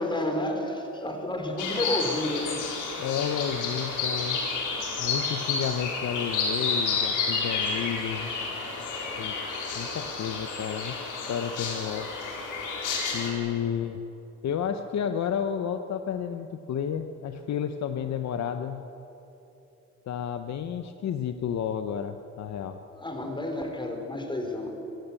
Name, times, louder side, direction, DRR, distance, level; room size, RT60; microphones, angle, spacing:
voice 1, 0.0-2.6 22.9-24.7, left 1 dB, 15° left, 4 dB, 4.2 m, -30 dB
sound 1, 1.6-13.3, left 4 dB, 85° left, 4.5 m, -30 dB
voice 2, 2.9-4.4 5.0-8.3 9.2-9.3 9.7-11.0 11.3-12.1 13.1-14.0 14.4-18.8 20.0-22.8, left 8 dB, 65° left, 8 dB, 1.1 m, -31 dB
25.0 x 16.0 x 8.6 m, 3.0 s
cardioid pair, 90°, 30 cm